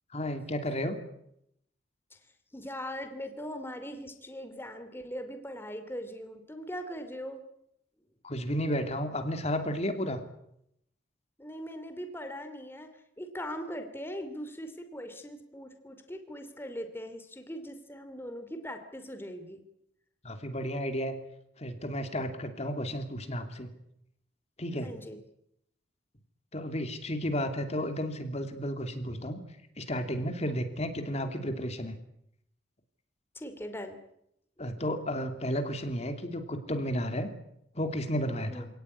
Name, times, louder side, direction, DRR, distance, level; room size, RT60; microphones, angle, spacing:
voice 1, 0.1-1.0 8.2-10.2 20.2-21.2 21.6-23.7 24.6-24.9 26.5-29.4 29.8-31.9 34.6-37.3 37.7-38.7, equal, 35° left, 7 dB, 2.8 m, -32 dB
voice 2, 2.5-7.4 11.4-12.9 13.2-19.6 24.8-25.2 33.3-34.0 38.5-38.7, equal, 10° left, 7 dB, 2.8 m, -40 dB
27.5 x 18.0 x 9.8 m, 0.79 s
head